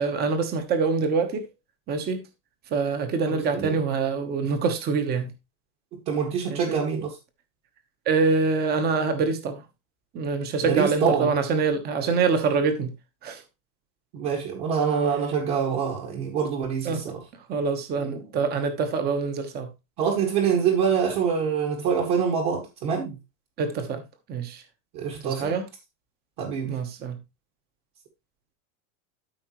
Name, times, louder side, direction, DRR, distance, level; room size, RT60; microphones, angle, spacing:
voice 1, 0.0-1.4 1.9-2.2 2.7-5.3 6.5-6.8 8.1-9.6 10.1-12.9 13.2-13.4 16.8-17.1 17.5-19.7 23.6-24.0 24.3-24.6 25.2-25.7 26.6-27.2, right 4 dB, 20° right, 1.2 m, -25 dB
voice 2, 5.9-7.1 10.6-11.3 14.1-17.2 20.0-23.2 24.9-25.5 26.4-26.7, right 6 dB, 40° right, 2.1 m, -25 dB
13.0 x 5.5 x 3.1 m
supercardioid pair, 175°, 44 cm